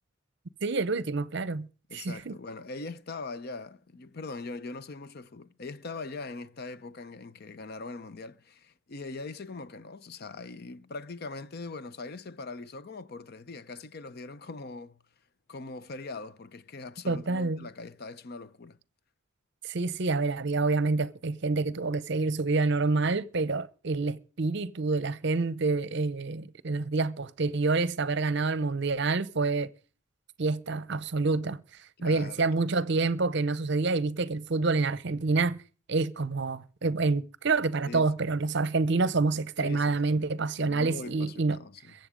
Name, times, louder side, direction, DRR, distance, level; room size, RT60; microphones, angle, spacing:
voice 1, 0.6-2.3 17.1-17.7 19.6-29.7 30.4-31.6 32.0-35.6 35.9-41.6, right 3 dB, 55° right, 0.7 m, -27 dB
voice 2, 1.9-15.0 15.5-18.8 32.0-32.5 37.9-38.4 39.6-41.9, left 3 dB, 45° left, 0.6 m, -41 dB
22.5 x 7.7 x 5.1 m
head